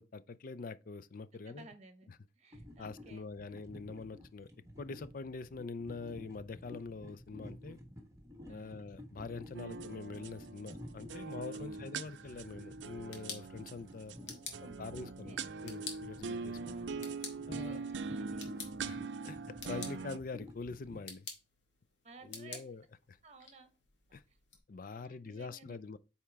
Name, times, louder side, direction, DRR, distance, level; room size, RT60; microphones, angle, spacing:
voice 1, 0.0-1.7 2.1-2.2 2.8-4.5 4.8-7.8 8.5-14.2 14.6-15.3 15.6-16.6 17.5-17.8 18.8-19.0 19.2-19.4 19.6-21.3 22.2-22.8 23.1-23.2 24.1-24.2 24.7-26.0, left 4 dB, 50° left, 0.5 m, -44 dB
voice 2, 1.4-2.1 2.4-3.3 8.4-8.8 11.6-11.9 14.1-15.5 16.6-16.9 17.6-18.5 22.0-22.7 23.2-23.7 24.1-24.4 24.8-25.8, right 2 dB, 40° right, 1.1 m, -55 dB
sound 1, 2.5-21.0, left 1 dB, 20° right, 1.3 m, -52 dB
sound 2, 9.5-20.2, right 4 dB, 85° right, 0.5 m, -43 dB
sound 3, 12.8-24.6, left 5 dB, 90° left, 1.9 m, -51 dB
8.5 x 4.4 x 3.4 m
head